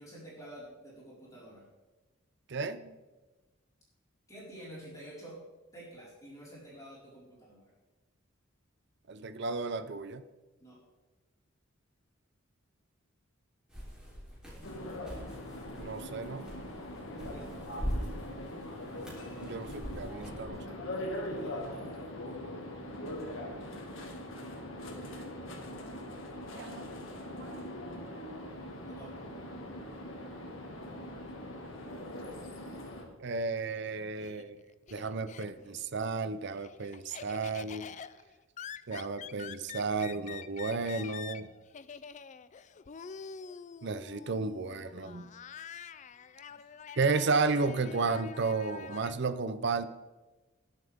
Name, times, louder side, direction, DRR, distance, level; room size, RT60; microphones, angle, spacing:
voice 1, 0.0-1.7 4.3-5.4 5.7-7.7 10.6-10.8 17.1-17.6 21.2-22.0 24.7-25.2 28.9-29.2, right 1 dB, 15° left, -7 dB, 4.7 m, -49 dB
voice 2, 2.5-2.9 9.1-10.2 15.8-16.5 19.4-20.8 22.5-22.6 23.3-23.6 26.6-26.9 27.4-27.7 33.2-34.6 34.9-37.9 38.9-41.5 43.8-45.3 47.0-49.9, right 4 dB, 55° right, 13 dB, 0.6 m, -33 dB
sound 1, 13.7-20.5, equal, 5° right, 3.5 m, -42 dB
sound 2, 14.6-33.0, left 1 dB, 75° left, 2.1 m, -41 dB
Laughter, 33.7-35.9 36.2-49.1, left 7 dB, 35° left, 0.4 m, -47 dB
20.0 x 7.4 x 3.6 m, 1.2 s
head